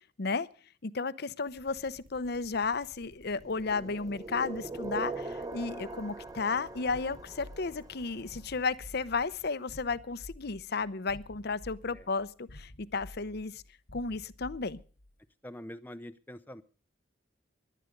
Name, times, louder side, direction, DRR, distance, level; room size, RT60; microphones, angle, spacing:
voice 1, 0.8-13.6 13.9-14.8, left 4 dB, 55° left, 16 dB, 0.8 m, -33 dB
sound 1, 1.5-9.4, equal, 55° right, 6.6 m, -58 dB
sound 2, 3.4-8.4, right 3 dB, 20° right, 0.9 m, -41 dB
sound 3, 6.9-15.1, left 1 dB, 85° left, 1.5 m, -51 dB
voice 2, 15.4-16.6, left 1 dB, 10° left, 9 dB, 0.7 m, -45 dB
17.5 x 12.0 x 5.3 m, 0.40 s
head